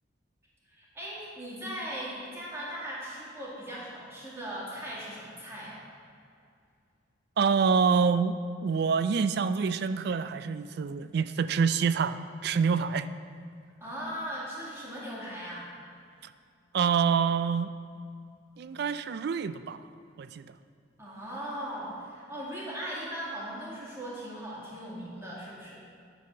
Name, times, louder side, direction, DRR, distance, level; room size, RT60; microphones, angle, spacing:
voice 1, 0.6-5.8 13.8-15.7 21.0-25.8, equal, 15° right, -7 dB, 2.2 m, -39 dB
voice 2, 7.4-13.1 16.2-16.3 16.7-17.7 18.6-19.8 20.2-20.5, right 5 dB, 55° right, 13 dB, 0.3 m, -26 dB
10.5 x 4.2 x 6.6 m, 2.4 s
head